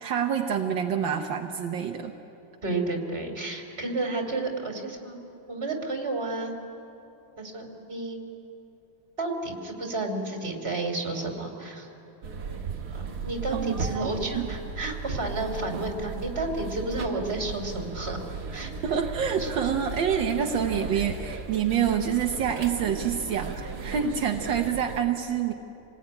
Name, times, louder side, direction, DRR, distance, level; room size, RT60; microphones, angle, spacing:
voice 1, 0.0-2.1 13.5-14.1 14.4-14.5 18.8-25.5, right 8 dB, 75° right, 3 dB, 1.7 m, -27 dB
voice 2, 2.6-5.2 5.5-6.5 7.4-8.2 9.2-11.9 12.9-18.2 18.5-18.7 19.4-19.5 20.9-21.0, right 2 dB, 30° right, 3 dB, 3.5 m, -31 dB
sound 1, 12.2-25.0, right 5 dB, 55° right, 2.0 m, -36 dB
28.0 x 20.0 x 9.7 m, 3.0 s
omnidirectional pair, 2.1 m